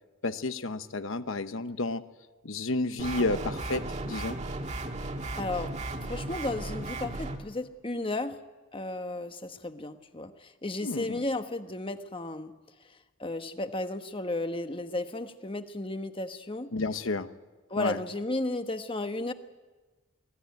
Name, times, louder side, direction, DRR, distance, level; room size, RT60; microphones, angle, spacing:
voice 1, 0.2-2.0 2.4-4.4 10.8-11.2 16.7-17.3 17.8-18.0, left 2 dB, 75° left, 11 dB, 1.0 m, -31 dB
sound 1, 3.0-7.4, right 2 dB, 35° right, 1.8 m, -35 dB
voice 2, 5.4-5.7 6.0-8.4 8.7-12.5 13.2-16.7 17.7-19.3, left 2 dB, 25° left, 8 dB, 1.1 m, -34 dB
24.0 x 17.0 x 9.4 m, 1.2 s
head